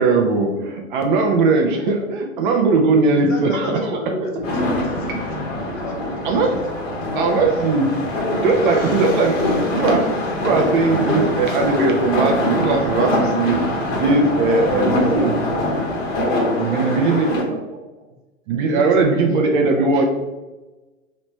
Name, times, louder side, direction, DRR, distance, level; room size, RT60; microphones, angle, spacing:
voice 1, 0.0-3.7 5.0-5.2 5.6-5.7 6.2-6.6 7.1-7.9 8.3-10.2 10.4-13.6 13.9-15.8 16.6-17.4 18.5-20.0, right 3 dB, 40° right, 2 dB, 0.6 m, -19 dB
voice 2, 3.2-6.6 7.0-7.1, left 2 dB, 70° left, 0 dB, 1.2 m, -32 dB
sound 1, 4.4-17.4, left 1 dB, 40° left, 1.4 m, -23 dB
sound 2, 4.4-16.3, left 1 dB, 10° right, 1.1 m, -35 dB
voice 3, 14.5-15.2 16.3-17.6 18.1-18.2 18.7-19.4 19.8-20.0, right 2 dB, 75° right, 1 dB, 1.1 m, -32 dB
4.0 x 3.2 x 3.0 m, 1.1 s
figure-of-eight pair, 105°, 40 cm